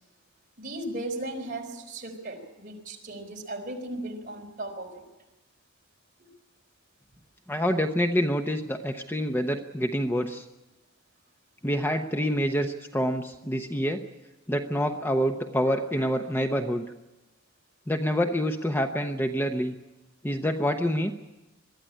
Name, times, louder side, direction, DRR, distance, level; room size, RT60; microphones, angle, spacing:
voice 1, 0.6-5.0 6.2-6.3, right 1 dB, 45° right, 1 dB, 4.3 m, -36 dB
voice 2, 7.5-10.4 11.6-14.0 14.5-16.8 17.9-19.7 20.2-21.1, equal, 10° left, 5 dB, 0.9 m, -27 dB
22.5 x 13.0 x 10.0 m, 1.0 s
head